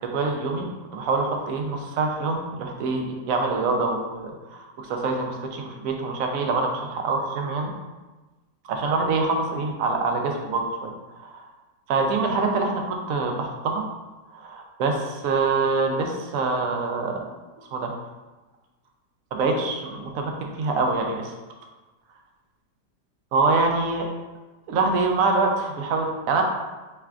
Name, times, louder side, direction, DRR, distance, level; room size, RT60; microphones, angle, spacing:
voice 1, 0.1-0.6 0.9-7.7 8.7-10.9 11.2-11.5 11.9-13.8 14.3-17.3 17.7-17.9 19.3-21.3 23.3-24.1 24.7-26.4, right 3 dB, 65° right, 2 dB, 0.9 m, -25 dB
5.7 x 3.4 x 2.4 m, 1.2 s
omnidirectional pair, 1.9 m